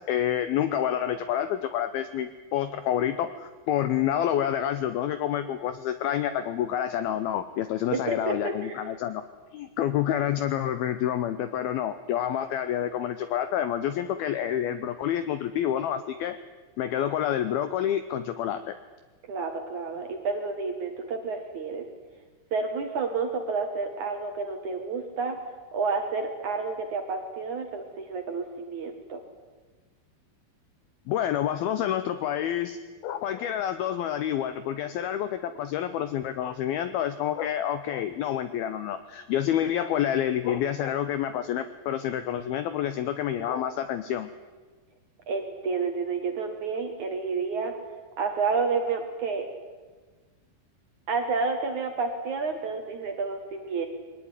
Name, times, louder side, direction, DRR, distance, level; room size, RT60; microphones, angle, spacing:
voice 1, 0.0-9.2 9.5-16.4 16.8-18.8 31.1-32.8 33.0-44.3, left 10 dB, 90° left, 11 dB, 2.1 m, -28 dB
voice 2, 7.9-8.8 19.3-21.9 22.5-25.4 25.7-29.2 45.3-47.7 48.2-49.5 51.1-53.9, right 4 dB, 55° right, 5 dB, 2.3 m, -30 dB
22.0 x 19.5 x 9.7 m, 1.4 s
omnidirectional pair, 5.5 m